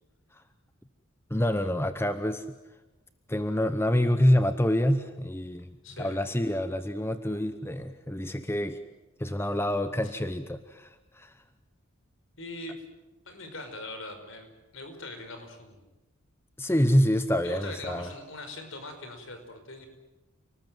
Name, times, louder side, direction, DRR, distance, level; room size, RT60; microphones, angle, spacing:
voice 1, 1.3-2.4 3.3-5.7 6.0-8.8 9.2-11.4 16.6-18.1, left 1 dB, 10° left, 10 dB, 0.8 m, -27 dB
voice 2, 5.8-6.2 10.0-10.1 12.4-12.8 13.3-15.8 17.4-19.9, left 2 dB, 60° left, 7 dB, 5.2 m, -41 dB
29.5 x 19.5 x 9.2 m, 1.1 s
head